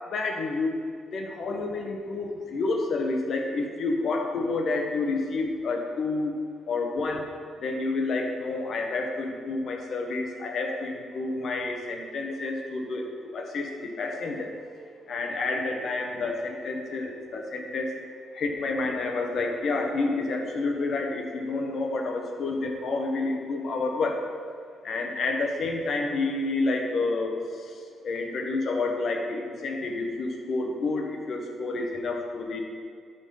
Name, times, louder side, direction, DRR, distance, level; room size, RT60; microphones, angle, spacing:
voice 1, 0.1-0.8 1.1-6.4 6.7-7.3 7.6-18.0 18.3-24.2 24.8-27.7 28.0-32.6, left 3 dB, 60° left, 2 dB, 1.3 m, -29 dB
12.0 x 4.1 x 5.6 m, 2.2 s
cardioid pair, 90°, 0 cm